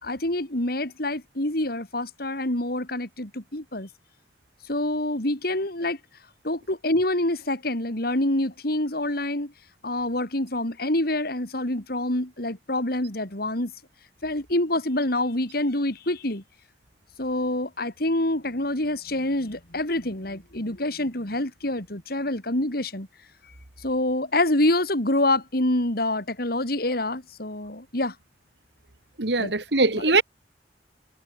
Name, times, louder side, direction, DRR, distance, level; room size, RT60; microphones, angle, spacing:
voice 1, 0.0-3.9 4.7-6.0 6.4-9.5 9.8-13.7 14.2-16.4 17.2-23.1 23.8-28.1 29.4-29.5, left 1 dB, 60° left, 4.0 m, -26 dB
voice 2, 29.2-30.2, right 3 dB, 70° right, 2.5 m, -21 dB
head